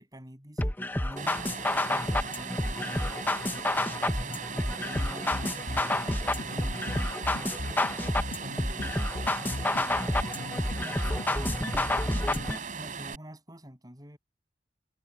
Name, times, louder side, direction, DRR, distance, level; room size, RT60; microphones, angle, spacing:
voice 1, 0.0-3.2 4.1-7.0 7.3-9.1 9.4-10.2 10.8-14.2, equal, 20° right, 7.7 m, -47 dB
sound 1, 0.6-12.6, left 1 dB, 10° left, 0.9 m, -30 dB
sound 2, 1.2-13.2, right 5 dB, 50° right, 3.6 m, -38 dB
sound 3, 5.0-12.5, left 1 dB, 70° left, 1.1 m, -38 dB
head